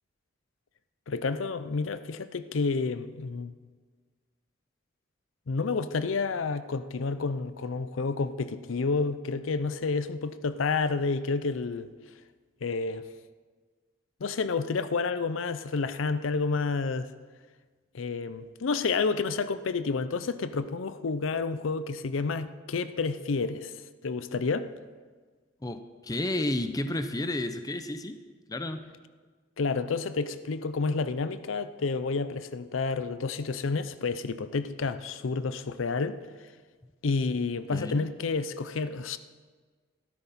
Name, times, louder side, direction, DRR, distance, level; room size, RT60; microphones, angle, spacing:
voice 1, 1.1-3.5 5.5-11.9 12.6-13.0 14.2-17.1 17.9-23.7 24.0-24.7 29.6-36.2 37.0-39.2, left 4 dB, 80° left, 0.5 m, -30 dB
voice 2, 25.6-28.2 28.5-28.8 37.7-38.1, left 1 dB, 20° left, 0.6 m, -31 dB
13.5 x 12.5 x 4.2 m
head